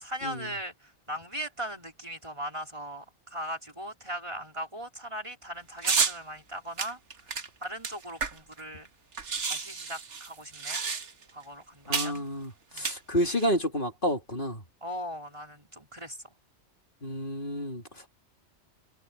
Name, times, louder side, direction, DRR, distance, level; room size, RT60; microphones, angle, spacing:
voice 1, 0.0-3.0 3.3-7.0 7.6-8.9 9.5-10.8 11.3-12.2 12.7-12.9 14.8-16.2, equal, 25° right, 4.1 m, -39 dB
sound 1, 5.8-6.2 6.8-8.6 8.9-9.0 9.1-11.3 11.9-12.2 12.7-13.5, right 5 dB, 80° right, 1.8 m, -30 dB
voice 2, 11.9-14.6 17.0-17.8, equal, 45° left, 3.4 m, -30 dB
omnidirectional pair, 1.2 m